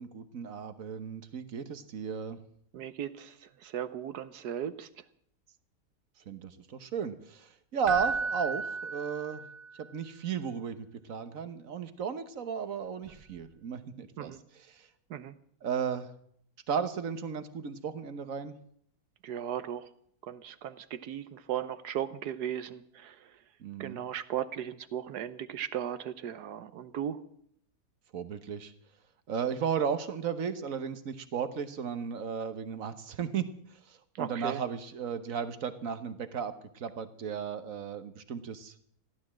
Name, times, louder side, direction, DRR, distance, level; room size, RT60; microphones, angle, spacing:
voice 1, 0.0-2.4 6.3-9.4 9.8-14.3 14.7-14.9 15.6-16.1 16.7-18.6 23.6-24.0 28.1-28.7 29.3-38.7, right 7 dB, 55° right, 11 dB, 1.5 m, -35 dB
voice 2, 2.7-4.9 14.2-14.4 15.1-15.3 19.2-19.9 20.2-23.4 23.8-27.2 34.1-34.6, right 10 dB, 80° right, 12 dB, 1.4 m, -37 dB
Keyboard (musical), 7.8-9.8 13.1-13.2, right 4 dB, 35° right, 0.7 m, -34 dB
15.5 x 12.0 x 7.4 m, 0.64 s
omnidirectional pair, 1.7 m